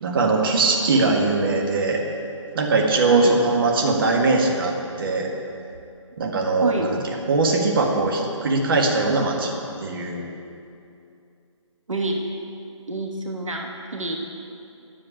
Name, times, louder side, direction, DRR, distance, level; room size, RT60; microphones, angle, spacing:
voice 1, 0.0-2.0 2.5-5.3 6.2-7.0 7.3-9.5 9.8-10.2, right 3 dB, 45° right, 0 dB, 1.7 m, -21 dB
voice 2, 6.6-6.9 11.9-12.3 12.9-14.2, right 3 dB, 80° right, 1 dB, 1.4 m, -26 dB
10.5 x 7.1 x 8.7 m, 2.6 s
figure-of-eight pair, 145°, 16 cm